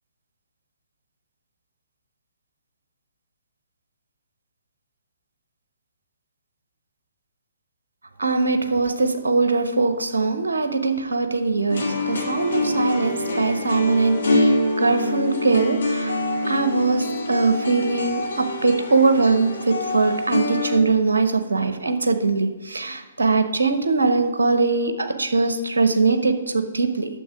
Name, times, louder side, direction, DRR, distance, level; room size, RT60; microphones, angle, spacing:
voice 1, 8.2-16.2 16.5-18.2 18.6-27.1, right 3 dB, 65° right, 7 dB, 1.1 m, -21 dB
sound 1, 11.7-20.8, left 2 dB, 65° left, 2.0 m, -25 dB
9.2 x 7.3 x 4.8 m, 1.3 s
figure-of-eight pair, 125°, 0 cm